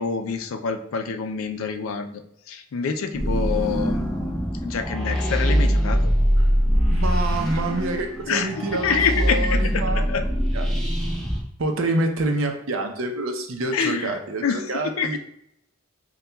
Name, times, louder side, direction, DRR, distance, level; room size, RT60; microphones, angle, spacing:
voice 1, 0.0-6.1 8.3-8.5 8.8-10.2 13.7-15.2, left 5 dB, 90° left, 6 dB, 0.4 m, -27 dB
sound 1, 3.1-11.4, equal, ahead, 0.6 m, -23 dB
voice 2, 6.9-10.0 10.5-10.7 11.0-11.1 11.6-15.2, right 2 dB, 75° right, 4 dB, 0.6 m, -27 dB
6.6 x 2.3 x 2.2 m, 0.74 s
head